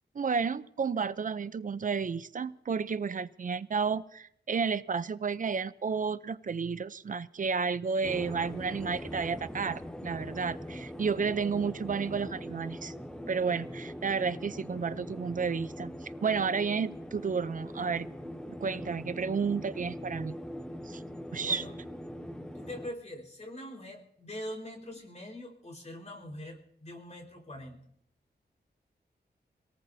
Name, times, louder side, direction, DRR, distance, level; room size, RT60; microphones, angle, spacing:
voice 1, 0.1-12.9 13.3-18.1 18.6-20.3 20.9-21.0 21.3-21.6, right 5 dB, 50° right, 15 dB, 0.6 m, -32 dB
sound 1, 8.0-22.9, equal, 5° left, 0.7 m, -42 dB
voice 2, 21.3-21.7 22.5-27.8, left 1 dB, 40° left, 0 dB, 4.5 m, -43 dB
27.0 x 18.0 x 2.7 m, 0.71 s
wide cardioid pair, 135°, 18 cm